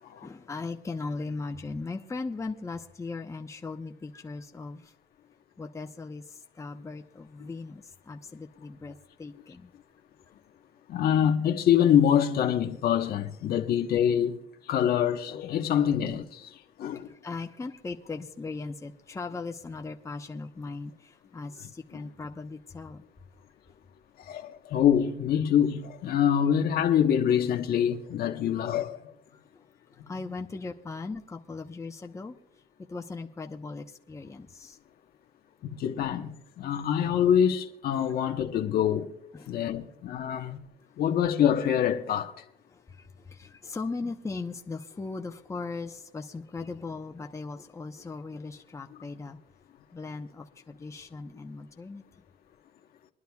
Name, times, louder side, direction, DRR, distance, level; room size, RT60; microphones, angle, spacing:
voice 1, 0.2-4.9 5.6-9.7 16.9-23.1 29.5-29.6 29.9-32.4 32.9-34.8 39.3-39.6 42.7-49.4 49.9-52.2, left 3 dB, 15° left, 1.0 m, -38 dB
voice 2, 10.9-14.4 14.7-16.5 16.8-17.1 21.9-22.1 24.2-29.1 35.7-39.1 39.5-40.6 41.0-42.4, left 9 dB, 65° left, 1.2 m, -25 dB
24.5 x 11.0 x 2.4 m
cardioid pair, 110°, 17 cm